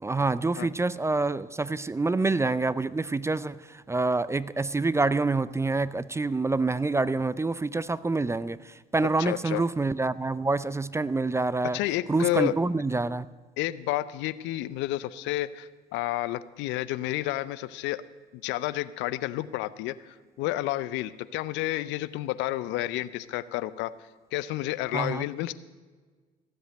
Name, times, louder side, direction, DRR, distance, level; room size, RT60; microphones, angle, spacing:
voice 1, 0.0-11.8 12.1-13.3 24.9-25.2, right 3 dB, 15° right, 17 dB, 0.4 m, -27 dB
voice 2, 9.2-9.6 11.7-12.5 13.6-18.0 18.3-23.9 24.3-25.5, left 16 dB, 70° left, 17 dB, 0.6 m, -30 dB
15.0 x 7.9 x 7.7 m, 1.4 s
hypercardioid pair, 60°, 20 cm